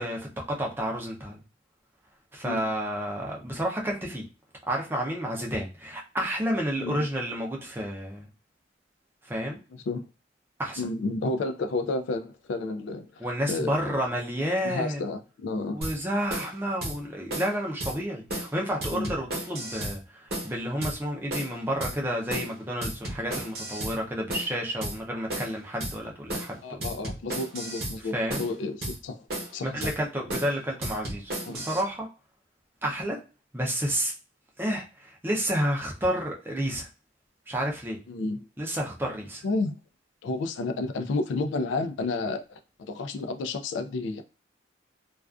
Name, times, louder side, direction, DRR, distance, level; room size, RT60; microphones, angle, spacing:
voice 1, 0.0-1.4 2.3-4.2 4.7-8.3 9.2-9.6 10.6-10.8 13.2-15.1 15.7-26.8 28.1-28.4 29.6-32.1 32.8-33.2 33.5-34.1 34.6-36.9 37.5-38.0 38.6-39.4, equal, 10° right, 0.4 m, -30 dB
voice 2, 9.7-10.1 10.8-13.7 14.6-15.8 18.9-19.1 26.6-29.3 29.5-29.7 31.4-31.7 38.1-38.5 38.7-38.8 39.4-39.7 40.2-44.2, left 3 dB, 75° left, 0.3 m, -31 dB
sound 1, 15.8-16.0 16.3-16.5 16.8-17.0 17.3-17.5 17.8-18.0 18.3-18.5 18.8-20.0 20.3-20.5 20.8-21.0 21.3-21.5 21.8-22.0 22.3-22.5 22.8-24.0 24.3-24.5 24.8-25.0 25.3-25.5 25.8-26.0 26.3-26.5 26.8-28.0 28.3-28.5 28.8-29.0 29.3-29.5 29.8-30.0 30.3-30.5 30.8-31.8, right 1 dB, 50° right, 0.9 m, -33 dB
2.4 x 2.3 x 2.3 m
head